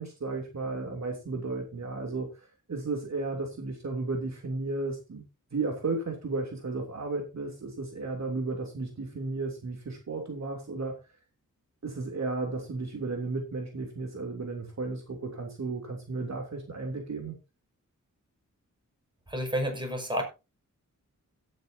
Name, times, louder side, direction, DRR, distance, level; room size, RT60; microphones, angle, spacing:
voice 1, 0.0-2.3 2.7-5.2 5.5-11.0 11.8-17.3, right 3 dB, 55° right, 2 dB, 3.1 m, -34 dB
voice 2, 19.3-20.2, equal, 15° right, 3 dB, 5.3 m, -30 dB
16.5 x 9.5 x 2.8 m, 0.28 s
wide cardioid pair, 110°, 32 cm